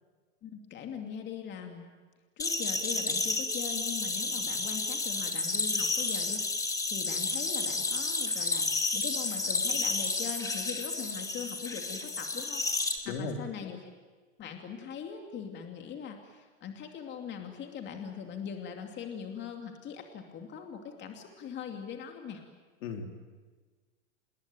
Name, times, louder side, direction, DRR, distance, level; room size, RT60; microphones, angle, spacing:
voice 1, 0.4-1.9 2.4-13.8 14.4-22.4, left 7 dB, 25° left, 4 dB, 2.6 m, -41 dB
sound 1, 2.4-13.0, left 3 dB, 10° left, 1.9 m, -31 dB
voice 2, 13.0-13.7 22.8-23.1, left 4 dB, 65° left, 4 dB, 3.9 m, -36 dB
27.5 x 21.0 x 9.2 m, 1.4 s
supercardioid pair, 140°, 39 cm